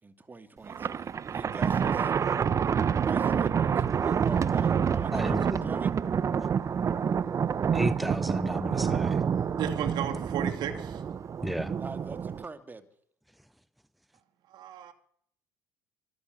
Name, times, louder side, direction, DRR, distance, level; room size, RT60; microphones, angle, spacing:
voice 1, 0.0-2.1 3.1-5.9 11.8-12.9, right 3 dB, 25° right, 2.8 m, -43 dB
Thunder, 0.7-12.4, right 7 dB, 40° right, 1.1 m, -28 dB
voice 2, 5.1-5.7 7.7-9.2 11.4-11.7, equal, ahead, 0.8 m, -33 dB
voice 3, 9.6-11.0 14.5-14.9, right 9 dB, 60° right, 2.7 m, -34 dB
25.0 x 14.0 x 8.2 m
hypercardioid pair, 65°, 8 cm